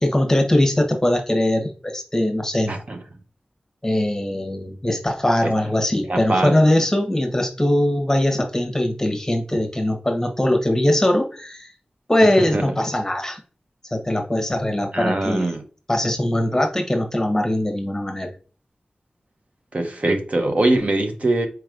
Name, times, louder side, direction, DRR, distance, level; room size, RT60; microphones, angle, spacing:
voice 1, 0.0-2.7 3.8-11.7 12.1-13.4 13.8-15.5 15.9-18.3, left 1 dB, 20° left, 1.0 m, -21 dB
voice 2, 2.7-3.0 5.4-5.5 6.0-6.6 12.5-12.6 14.9-15.6 19.7-21.5, right 2 dB, 50° right, 0.7 m, -22 dB
4.6 x 3.1 x 2.4 m
wide cardioid pair, 55°, 3 cm